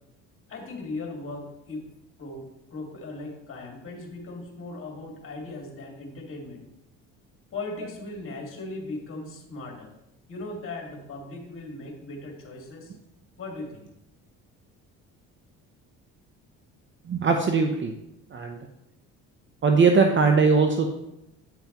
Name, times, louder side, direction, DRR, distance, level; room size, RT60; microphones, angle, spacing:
voice 1, 0.5-1.8 2.2-6.7 7.5-9.9 10.3-13.0 13.4-13.8, left 2 dB, 40° left, 1 dB, 2.0 m, -38 dB
voice 2, 17.1-17.9 18.3-18.6 19.6-20.9, right 4 dB, 35° right, 4 dB, 0.7 m, -20 dB
8.7 x 5.6 x 3.0 m, 0.86 s
supercardioid pair, 85°, 33 cm